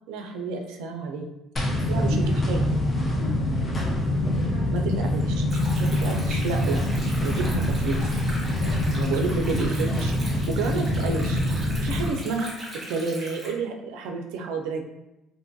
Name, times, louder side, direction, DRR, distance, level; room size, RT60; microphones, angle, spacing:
voice 1, 0.1-1.3 1.9-2.6 4.7-5.4 5.8-6.8 7.2-8.1 8.9-10.2 10.5-11.4 11.8-12.5 12.9-14.8, right 4 dB, 85° right, 3 dB, 0.3 m, -30 dB
sound 1, 1.6-12.1, left 1 dB, 20° left, 0.4 m, -25 dB
voice 2, 1.7-5.0 8.4-8.8, left 1 dB, 75° left, -3 dB, 0.8 m, -41 dB
Stream, 5.5-13.5, right 1 dB, 15° right, 1.1 m, -40 dB
2.6 x 2.2 x 2.6 m, 0.94 s
cardioid pair, 145°, 0 cm